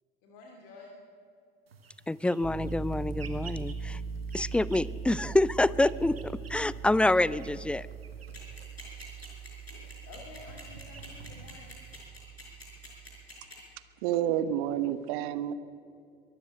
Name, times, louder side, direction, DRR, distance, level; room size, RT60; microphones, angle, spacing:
voice 1, 0.2-0.9 9.7-11.8, left 3 dB, 50° left, 2.9 m, -51 dB
sound 1, 1.7-12.1, right 4 dB, 80° right, 2.0 m, -52 dB
voice 2, 2.1-4.0 4.3-7.9, left 2 dB, 5° left, 0.4 m, -27 dB
Piano, 2.4-13.3, right 5 dB, 30° right, 2.2 m, -41 dB
sound 2, 8.3-13.5, left 1 dB, 90° left, 5.3 m, -47 dB
voice 3, 14.0-15.5, right 11 dB, 55° right, 1.1 m, -29 dB
23.5 x 14.0 x 8.0 m
figure-of-eight pair, 70°, 30 cm